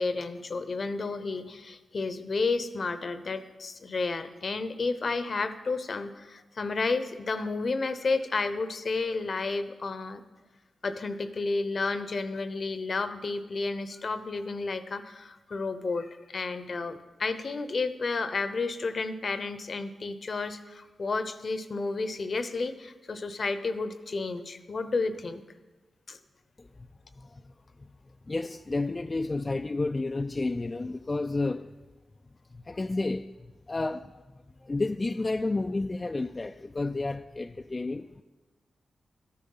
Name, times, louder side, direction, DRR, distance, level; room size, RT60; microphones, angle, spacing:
voice 1, 0.0-10.2 10.8-25.4 26.1-26.2, left 3 dB, 55° left, 0.8 m, -31 dB
voice 2, 27.2-27.5 27.8-27.9 28.3-31.7 32.5-38.2, left 2 dB, 35° left, 0.4 m, -31 dB
13.0 x 8.6 x 5.6 m
cardioid pair, 50°, 0 cm